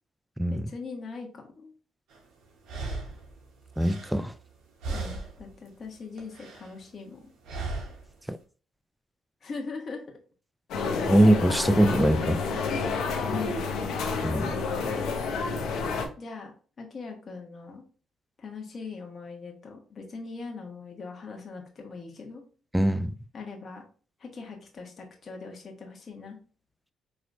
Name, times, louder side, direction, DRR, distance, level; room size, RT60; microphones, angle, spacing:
voice 1, 0.5-1.7 4.9-7.3 9.4-10.0 13.2-13.6 16.2-16.5 16.8-17.8 18.4-22.4 23.3-23.8 24.2-26.4, left 4 dB, 45° left, 1.2 m, -40 dB
sound 1, 2.1-2.2 2.6-4.6 4.8-5.5 5.8-6.8 7.5-8.1, right 3 dB, 85° right, 1.2 m, -36 dB
voice 2, 3.8-4.3 8.3-8.4 11.1-12.4 14.2-14.5 22.7-23.1, right 1 dB, 5° right, 0.3 m, -22 dB
sound 2, 10.7-16.1, left 4 dB, 80° left, 0.7 m, -29 dB
4.7 x 3.1 x 2.6 m
cardioid pair, 90°, 0 cm